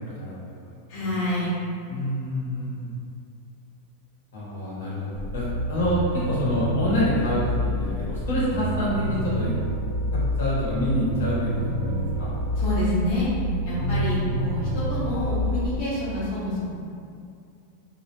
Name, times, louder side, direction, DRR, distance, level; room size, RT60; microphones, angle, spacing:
voice 1, 0.9-1.6 12.6-13.3 13.6-16.7, equal, 45° left, -9 dB, 0.7 m, -27 dB
voice 2, 1.9-2.9 4.3-5.1 5.3-9.5 10.1-12.3 13.8-14.3, left 1 dB, 85° left, -7 dB, 0.9 m, -27 dB
sound 1, 5.1-15.8, equal, 85° right, 0.5 m, -28 dB
2.2 x 2.0 x 2.9 m, 2.4 s
supercardioid pair, 170°, 0 cm